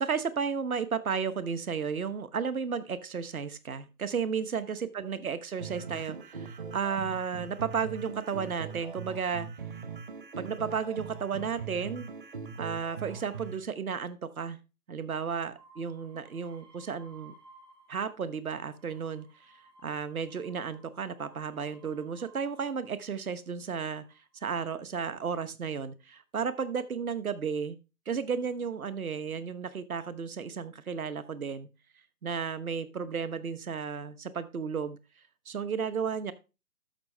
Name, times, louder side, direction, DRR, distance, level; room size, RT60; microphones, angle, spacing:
voice 1, 0.0-9.5 10.4-12.1 12.6-14.6 14.9-17.3 17.9-19.5 19.8-24.0 24.4-27.8 28.1-31.7 32.2-35.0 35.5-36.3, right 6 dB, 65° right, 14 dB, 1.1 m, -33 dB
sound 1, 5.6-13.6, right 6 dB, 35° right, 1.0 m, -41 dB
sound 2, 15.6-18.1 18.5-23.0 23.8-24.3, right 3 dB, 80° right, 4.0 m, -59 dB
11.5 x 6.6 x 3.3 m, 0.30 s
figure-of-eight pair, 155°, 47 cm